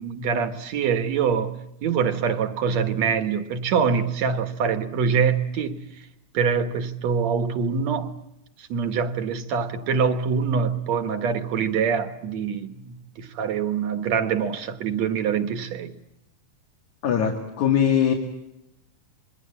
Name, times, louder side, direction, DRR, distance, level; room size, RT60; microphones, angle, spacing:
voice 1, 0.0-5.8 6.3-8.1 8.6-15.9, right 6 dB, 65° right, 2.6 m, -24 dB
voice 2, 17.0-18.1, left 8 dB, 75° left, 3.7 m, -21 dB
28.0 x 22.0 x 8.8 m
omnidirectional pair, 3.4 m